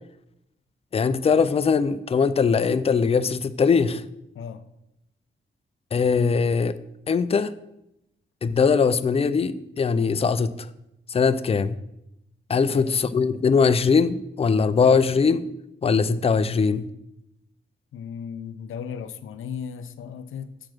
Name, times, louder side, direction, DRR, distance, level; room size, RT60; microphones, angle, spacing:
voice 1, 0.9-4.0 5.9-6.8 7.1-7.5 8.4-10.7 11.1-11.8 12.5-15.4 15.8-16.9, left 5 dB, 30° left, 0.4 m, -21 dB
voice 2, 12.6-13.0 17.9-20.6, left 7 dB, 80° left, 0.6 m, -36 dB
7.3 x 4.9 x 6.0 m
wide cardioid pair, 115°, 21 cm